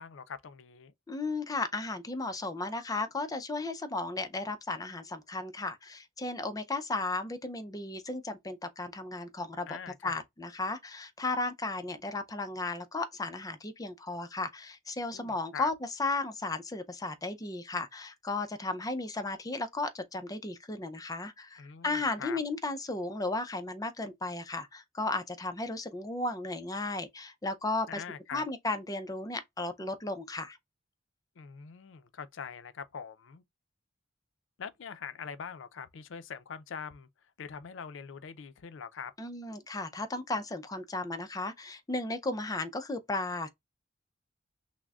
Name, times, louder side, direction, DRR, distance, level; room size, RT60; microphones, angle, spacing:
voice 1, 0.0-0.9 9.7-10.2 15.1-15.7 21.6-22.4 27.9-28.4 31.4-33.4 34.6-37.1 37.4-39.1, left 6 dB, 70° left, 0.5 m, -43 dB
voice 2, 1.1-9.8 10.0-15.7 16.0-28.0 28.3-30.6 39.2-43.5, left 2 dB, 20° left, 0.4 m, -35 dB
6.0 x 2.1 x 2.3 m
head